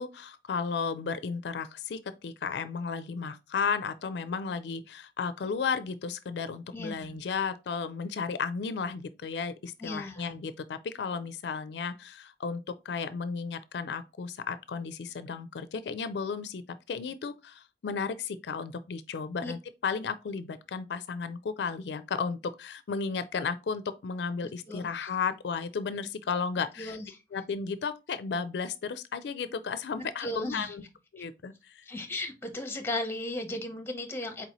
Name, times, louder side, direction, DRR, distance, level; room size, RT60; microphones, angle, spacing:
voice 1, 0.0-27.0 27.3-30.8 31.1-31.9, left 5 dB, 75° left, 0.4 m, -34 dB
voice 2, 6.7-7.2 9.8-10.3 19.4-19.5 24.7-25.1 26.8-27.1 30.0-30.7 31.2-31.3 31.8-34.5, left 1 dB, 15° left, 0.8 m, -36 dB
4.3 x 4.0 x 2.9 m
head